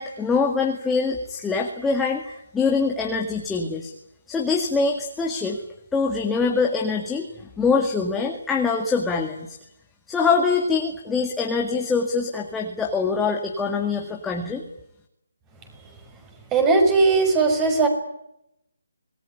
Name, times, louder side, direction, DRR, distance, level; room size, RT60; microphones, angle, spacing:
voice 1, 0.0-3.9 4.3-5.6 5.9-9.6 10.1-14.6, left 4 dB, 5° left, 0 dB, 2.1 m, -24 dB
voice 2, 16.5-17.9, right 3 dB, 15° right, 6 dB, 5.7 m, -18 dB
26.5 x 19.5 x 9.8 m, 0.81 s
figure-of-eight pair, 160°, 0 cm